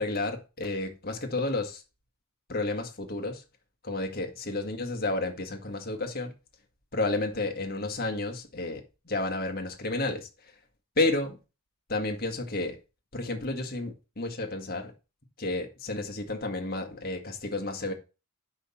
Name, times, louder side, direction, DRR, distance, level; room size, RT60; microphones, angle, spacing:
voice 1, 0.0-1.8 2.5-3.4 3.8-6.3 6.9-10.3 11.0-11.4 11.9-12.8 13.1-14.9 15.4-17.9, left 2 dB, 45° left, 1.7 m, -31 dB
7.8 x 5.6 x 4.3 m
head